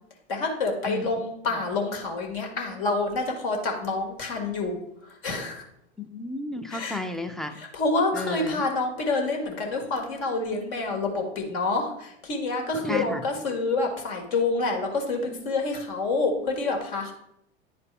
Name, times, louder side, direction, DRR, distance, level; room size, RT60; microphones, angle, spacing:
voice 1, 0.3-4.8 5.2-5.6 6.7-7.0 7.6-17.1, left 3 dB, 60° left, 2 dB, 1.8 m, -27 dB
voice 2, 0.9-1.2 6.0-7.6 8.1-8.6 12.8-13.3, left 2 dB, ahead, 7 dB, 0.4 m, -33 dB
10.0 x 4.0 x 3.3 m, 0.76 s
figure-of-eight pair, 90°, 34 cm